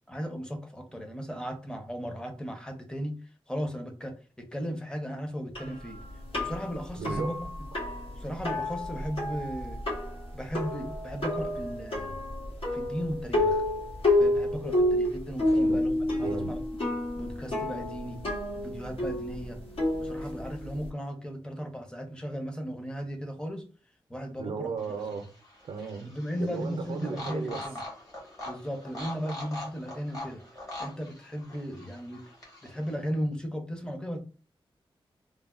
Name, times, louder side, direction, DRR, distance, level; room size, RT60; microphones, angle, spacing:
voice 1, 0.1-3.2 3.5-6.0 6.3-7.4 8.1-9.8 10.3-12.2 12.7-13.6 14.2-16.6 17.2-18.3 18.5-19.6 20.0-23.7 24.1-24.8 26.0-27.8 28.4-30.4 30.8-32.2 32.6-34.2, equal, 10° left, 0.6 m, -36 dB
sound 1, 5.5-20.9, left 1 dB, 80° left, 1.3 m, -30 dB
voice 2, 6.9-7.3 7.7-7.9 15.5-15.8 16.2-16.5 24.4-25.3 25.6-26.1 26.4-27.6, right 5 dB, 85° right, 0.4 m, -35 dB
sound 2, 24.8-32.9, left 1 dB, 40° left, 1.3 m, -43 dB
3.2 x 2.1 x 2.4 m
wide cardioid pair, 145°, 9 cm